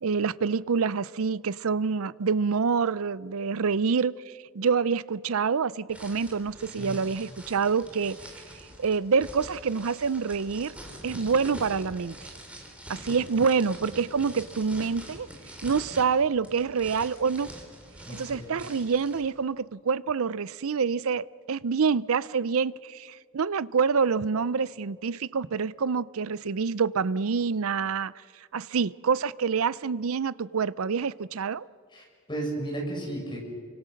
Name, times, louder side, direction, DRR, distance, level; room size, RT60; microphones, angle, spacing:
voice 1, 0.0-4.1 4.5-8.2 8.8-10.7 11.0-12.1 12.9-15.3 15.6-17.5 18.1-28.1 28.5-31.7, right 5 dB, 70° right, 19 dB, 0.5 m, -26 dB
sound 1, 5.9-19.3, right 1 dB, 5° right, 3.6 m, -45 dB
voice 2, 18.0-18.6 31.9-33.4, right 1 dB, 20° left, 0 dB, 6.0 m, -34 dB
28.0 x 25.0 x 6.5 m, 2.1 s
head